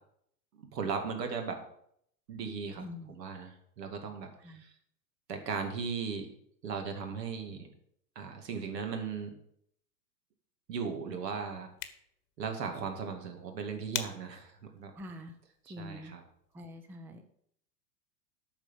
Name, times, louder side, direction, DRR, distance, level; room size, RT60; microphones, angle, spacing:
voice 1, 0.5-1.6 2.3-2.8 3.1-4.7 5.3-6.3 6.6-7.7 8.2-9.3 10.7-11.7 12.4-14.9 15.7-16.2, right 5 dB, 75° right, 5 dB, 2.3 m, -37 dB
voice 2, 2.8-3.2 4.4-4.6 14.9-15.4 15.7-16.1 16.5-17.2, left 1 dB, 5° right, 8 dB, 0.5 m, -45 dB
sound 1, 11.6-16.6, left 13 dB, 45° left, 1.2 m, -46 dB
8.8 x 6.1 x 7.4 m, 0.69 s
hypercardioid pair, 105°, 50 cm